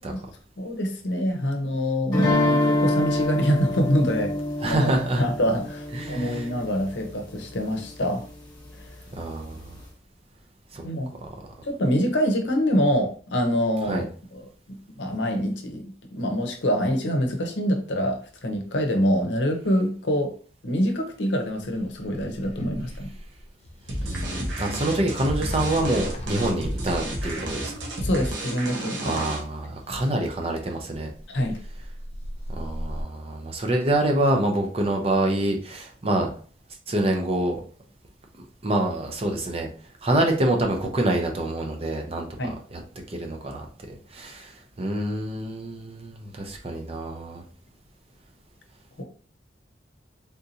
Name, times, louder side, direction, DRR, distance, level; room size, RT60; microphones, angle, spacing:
voice 1, 0.6-4.3 4.6-4.8 5.2-8.2 10.8-11.1 11.6-14.0 14.3-20.3 20.6-23.1 27.3-27.5 28.0-29.2 31.3-31.6 42.4-42.6 49.0-49.1, equal, 70° left, 4 dB, 0.7 m, -25 dB
sound 1, 2.1-7.1, left 1 dB, 20° left, 1.3 m, -26 dB
voice 2, 4.6-5.2 5.9-6.4 9.1-9.8 10.7-10.8 11.2-11.3 13.9-14.1 24.0-27.7 29.0-31.1 32.5-36.3 36.9-37.6 38.6-39.7 40.0-42.3 42.7-42.8 43.1-47.4, right 1 dB, 30° right, 3 dB, 0.6 m, -26 dB
sound 2, 21.6-28.3 30.9-33.0, equal, 35° left, 0.5 m, -37 dB
sound 3, 23.9-29.6, right 1 dB, 85° right, 1.1 m, -32 dB
3.6 x 2.6 x 2.7 m, 0.42 s
head